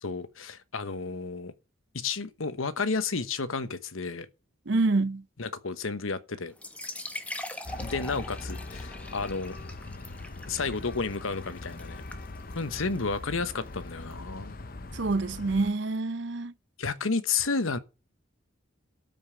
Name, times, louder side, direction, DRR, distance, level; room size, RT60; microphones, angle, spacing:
voice 1, 0.0-1.5 1.9-4.3 5.4-6.5 7.8-9.6 10.5-12.0 12.5-14.6 16.8-17.8, left 4 dB, 90° left, 1.1 m, -31 dB
voice 2, 4.7-5.2 14.9-16.5, right 3 dB, 60° right, 0.6 m, -27 dB
sound 1, 6.5-14.1, left 1 dB, 5° left, 1.1 m, -43 dB
sound 2, 7.7-15.7, left 2 dB, 45° left, 0.8 m, -41 dB
13.0 x 5.4 x 6.9 m
head